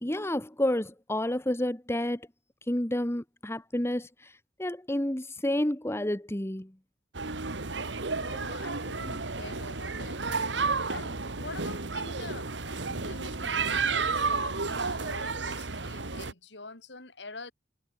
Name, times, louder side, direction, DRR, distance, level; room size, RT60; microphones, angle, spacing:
voice 1, 0.0-2.3 2.7-4.3 4.6-6.7, left 1 dB, 15° left, 1.4 m, -30 dB
sound 1, 7.1-16.3, right 4 dB, 80° right, 2.0 m, -32 dB
voice 2, 8.2-10.6 10.9-17.5, left 3 dB, 70° left, 5.2 m, -45 dB
head